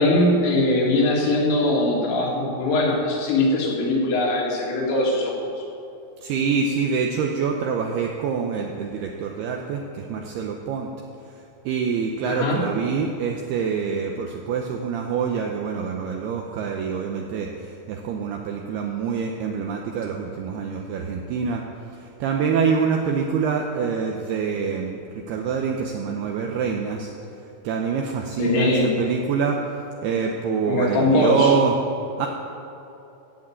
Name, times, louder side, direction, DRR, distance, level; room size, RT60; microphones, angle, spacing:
voice 1, 0.0-5.3 12.3-12.7 28.4-29.0 30.7-31.5, left 2 dB, 75° left, -2 dB, 4.4 m, -21 dB
voice 2, 6.2-10.9 11.7-21.6 21.9-27.1 27.6-29.6 30.0-31.8 32.2-32.3, right 6 dB, 80° right, 1 dB, 2.4 m, -25 dB
15.0 x 6.4 x 8.6 m, 2.9 s
omnidirectional pair, 5.4 m